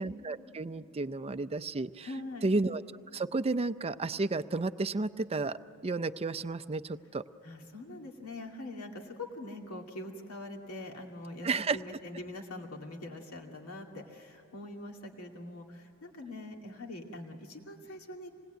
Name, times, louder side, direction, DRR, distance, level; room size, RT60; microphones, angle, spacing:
voice 1, 0.0-2.1 2.4-2.8 3.1-5.6 5.8-7.2 11.4-11.8, right 3 dB, 25° right, 12 dB, 0.5 m, -32 dB
voice 2, 2.0-2.5 7.4-18.3, left 1 dB, 70° left, 1 dB, 2.5 m, -43 dB
26.5 x 20.0 x 9.2 m, 2.6 s
head